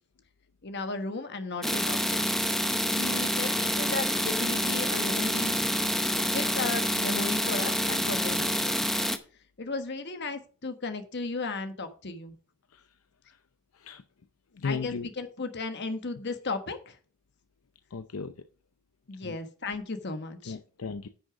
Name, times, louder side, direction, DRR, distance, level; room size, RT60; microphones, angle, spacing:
voice 1, 0.6-2.2 2.9-5.8 6.1-8.8 9.6-12.3 14.6-17.0 19.1-20.6, left 3 dB, 55° left, 8 dB, 1.3 m, -35 dB
sound 1, 1.6-9.2, equal, ahead, 0.7 m, -27 dB
voice 2, 14.6-15.1 17.9-18.3 19.2-19.3 20.5-21.1, left 4 dB, 80° left, 10 dB, 0.6 m, -35 dB
10.0 x 6.4 x 4.8 m, 0.40 s
head